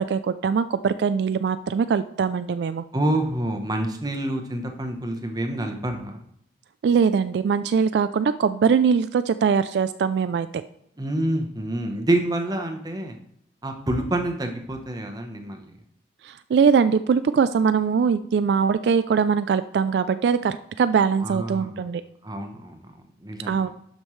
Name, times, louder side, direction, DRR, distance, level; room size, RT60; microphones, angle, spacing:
voice 1, 0.0-2.8 6.8-10.6 16.2-22.0 23.5-23.7, right 6 dB, 70° right, 12 dB, 0.3 m, -22 dB
voice 2, 2.9-6.2 11.0-13.2 13.6-15.7 21.2-21.9 22.2-22.8 23.2-23.6, right 1 dB, 20° right, 4 dB, 0.9 m, -27 dB
11.5 x 5.2 x 3.2 m, 0.75 s
head